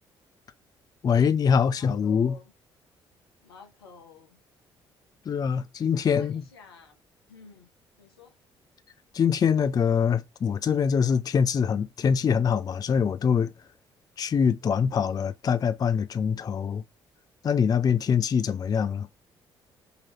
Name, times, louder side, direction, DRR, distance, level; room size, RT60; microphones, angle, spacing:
voice 1, 1.0-2.4 5.3-6.4 9.1-13.5 14.2-16.8 17.4-19.1, left 7 dB, 30° left, 0.4 m, -24 dB
voice 2, 1.8-2.5 3.4-4.4 5.9-7.0 7.2-7.7 8.0-8.3, left 5 dB, 80° left, 1.0 m, -50 dB
4.0 x 3.0 x 4.2 m
figure-of-eight pair, 45°, 13 cm